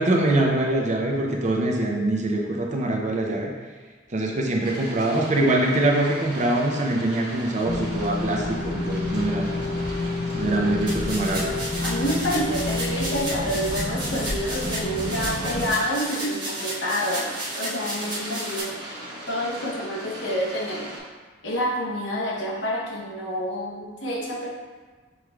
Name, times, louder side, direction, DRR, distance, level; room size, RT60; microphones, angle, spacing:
voice 1, 0.0-3.5 4.1-9.5 10.3-11.5, right 1 dB, 40° right, 0 dB, 0.6 m, -23 dB
sound 1, 4.6-21.0, right 1 dB, 60° right, 1.4 m, -39 dB
sound 2, 7.6-15.7, left 2 dB, 50° left, 0.6 m, -29 dB
sound 3, 10.9-18.6, right 1 dB, 25° right, 1.0 m, -33 dB
voice 2, 11.8-18.8 19.3-20.9 21.4-24.5, equal, 80° left, -2 dB, 0.9 m, -28 dB
6.3 x 3.1 x 2.3 m, 1.4 s
head